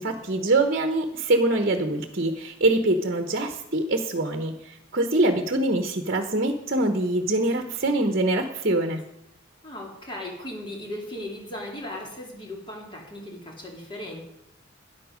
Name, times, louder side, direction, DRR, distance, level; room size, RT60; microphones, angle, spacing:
voice 1, 0.0-9.0, right 2 dB, 50° right, 6 dB, 1.1 m, -24 dB
voice 2, 9.6-14.2, left 1 dB, 25° left, 0 dB, 2.8 m, -37 dB
13.0 x 10.0 x 5.2 m, 0.80 s
head